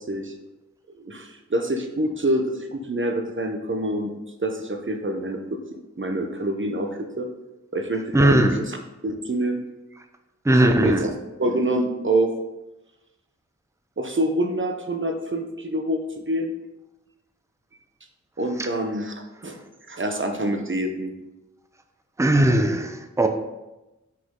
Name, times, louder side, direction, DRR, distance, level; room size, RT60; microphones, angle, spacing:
voice 1, 1.0-4.1 4.4-7.3 7.7-8.8 9.0-9.6 10.5-11.1 11.4-12.3 14.0-16.5 18.4-19.1 19.4-19.6 19.9-21.1, right 1 dB, 40° right, 4 dB, 0.9 m, -26 dB
voice 2, 8.1-8.6 10.4-11.1 18.6-18.7 22.2-23.3, right 1 dB, 10° right, 6 dB, 0.7 m, -18 dB
5.9 x 5.1 x 3.8 m, 1.0 s
wide cardioid pair, 45°, 31 cm